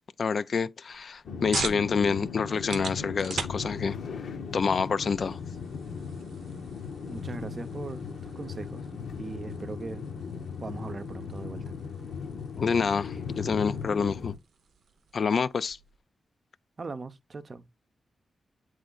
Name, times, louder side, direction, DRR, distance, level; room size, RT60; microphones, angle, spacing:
voice 1, 0.2-4.0 4.5-5.4 12.6-14.3 15.1-15.8, left 5 dB, 60° left, 0.3 m, -27 dB
sound 1, 0.9-16.0, right 6 dB, 85° right, 0.7 m, -44 dB
sound 2, 1.2-14.4, left 5 dB, 85° left, 0.8 m, -37 dB
voice 2, 7.1-8.9 9.2-10.0 10.6-11.7 16.8-17.7, right 4 dB, 45° right, 0.6 m, -39 dB
7.9 x 3.2 x 3.8 m
cardioid pair, 85°, 0 cm